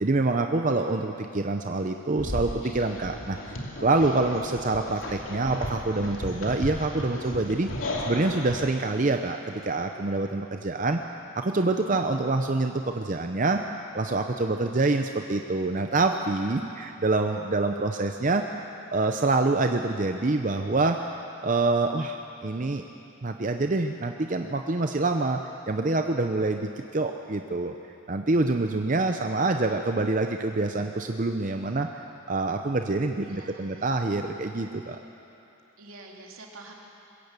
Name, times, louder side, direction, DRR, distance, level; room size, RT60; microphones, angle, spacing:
voice 1, 0.0-7.7 8.0-11.0 11.3-13.6 13.9-18.4 18.9-21.0 21.4-22.8 23.2-25.4 25.7-27.7 28.1-31.9 32.3-35.0, right 2 dB, 40° right, 5 dB, 0.6 m, -26 dB
sound 1, 2.2-8.7, left 1 dB, 75° left, 2.7 m, -35 dB
voice 2, 33.2-33.9 34.9-35.0 35.8-36.7, right 2 dB, 80° right, -1 dB, 2.8 m, -47 dB
21.5 x 16.0 x 8.2 m, 2.8 s
head